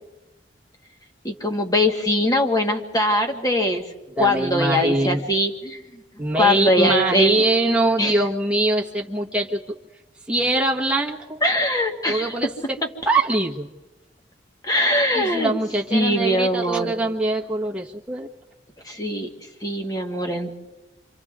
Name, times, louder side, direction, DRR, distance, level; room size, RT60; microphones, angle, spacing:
voice 1, 1.2-3.9 4.2-5.8 6.4-7.4 8.0-8.1 11.4-12.3 14.6-15.5 15.9-17.0 18.9-19.3 19.6-20.5, left 1 dB, 20° left, 3 dB, 1.8 m, -21 dB
voice 2, 4.2-5.2 6.2-9.6 10.3-11.4 12.1-12.8 13.0-13.7 15.1-18.3, right 2 dB, 5° right, -3 dB, 1.5 m, -23 dB
29.0 x 26.0 x 3.7 m, 1.1 s
head